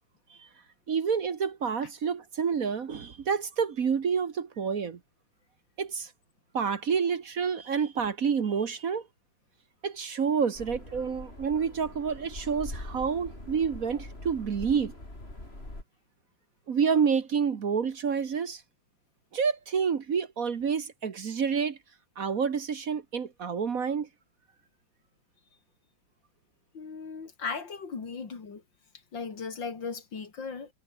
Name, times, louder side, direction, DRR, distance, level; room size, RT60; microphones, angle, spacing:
voice 1, 0.9-5.0 5.8-6.1 6.5-9.0 9.8-14.9 16.7-18.6 19.3-21.8 22.2-24.1, right 6 dB, 45° right, 1.5 m, -28 dB
sound 1, 10.5-15.8, left 1 dB, 30° left, 6.4 m, -43 dB
voice 2, 26.7-28.6 29.1-30.7, left 5 dB, 60° left, 3.6 m, -37 dB
omnidirectional pair, 2.3 m